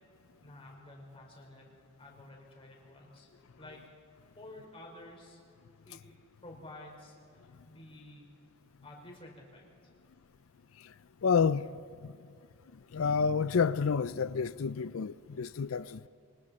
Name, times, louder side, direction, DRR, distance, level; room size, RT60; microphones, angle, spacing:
voice 1, 0.4-1.7 2.0-3.3 3.6-3.9 4.4-5.4 5.8-6.0 6.4-7.2 7.6-8.3 8.8-9.6, left 1 dB, 25° left, 4.5 m, -51 dB
voice 2, 11.2-11.6 12.0-12.1 12.9-16.1, left 5 dB, 75° left, 0.5 m, -29 dB
27.5 x 24.0 x 4.3 m
head